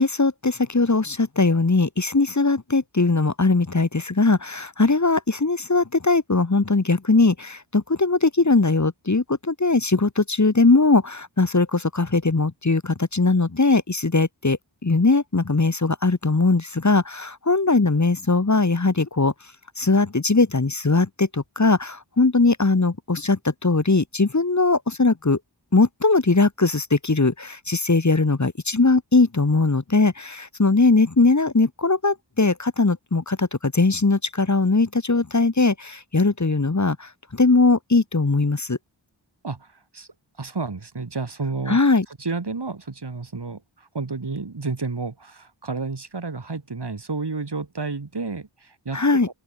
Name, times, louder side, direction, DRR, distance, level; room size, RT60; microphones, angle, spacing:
voice 1, 0.0-19.3 19.8-25.4 25.7-38.8 41.7-42.1 48.9-49.3, left 3 dB, 40° left, 1.8 m, -20 dB
voice 2, 40.4-41.8 42.2-49.0, right 4 dB, 60° right, 3.3 m, -31 dB
open air
wide cardioid pair, 55°, 45 cm